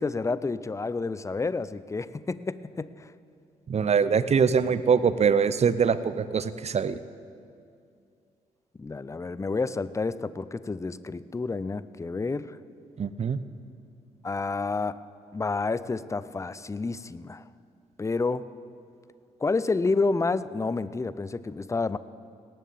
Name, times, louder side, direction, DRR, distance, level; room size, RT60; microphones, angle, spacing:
voice 1, 0.0-3.1 8.8-12.6 14.2-15.0 15.3-17.4 18.0-18.5 19.4-22.0, left 3 dB, 15° left, 16 dB, 0.5 m, -29 dB
voice 2, 3.7-7.0 13.0-13.4, right 6 dB, 35° right, 15 dB, 0.7 m, -23 dB
18.0 x 7.5 x 7.2 m, 2.4 s
hypercardioid pair, 45°, 18 cm